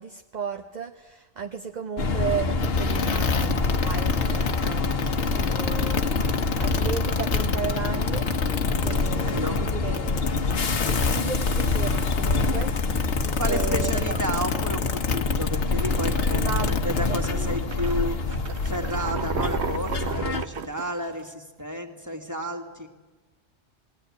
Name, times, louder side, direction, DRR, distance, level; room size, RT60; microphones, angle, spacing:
voice 1, 0.0-8.3 8.8-10.4 10.8-14.2 16.3-16.8 17.1-17.9, right 7 dB, 40° right, 5 dB, 1.0 m, -34 dB
sound 1, 2.0-20.4, left 3 dB, 60° left, 1.4 m, -27 dB
sound 2, 2.6-17.3, left 5 dB, 80° left, 1.4 m, -28 dB
voice 2, 9.2-9.6 13.4-22.9, equal, 15° right, 3 dB, 2.3 m, -32 dB
sound 3, 15.0-15.2 15.7-16.2 16.8-16.9 17.2-21.3, right 6 dB, 70° right, 1.3 m, -34 dB
21.0 x 17.5 x 9.9 m, 1.2 s
omnidirectional pair, 1.2 m